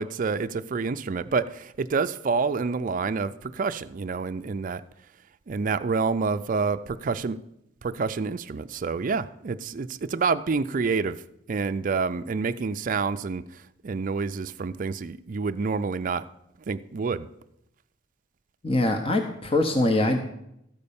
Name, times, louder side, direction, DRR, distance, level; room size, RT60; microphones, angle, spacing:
voice 1, 0.0-4.8 5.5-7.4 7.8-11.2 11.5-13.5 13.8-16.3 16.7-17.3, right 4 dB, 40° right, 0.4 m, -28 dB
voice 2, 18.6-20.2, left 2 dB, 30° left, 0.7 m, -23 dB
13.0 x 5.4 x 6.9 m
head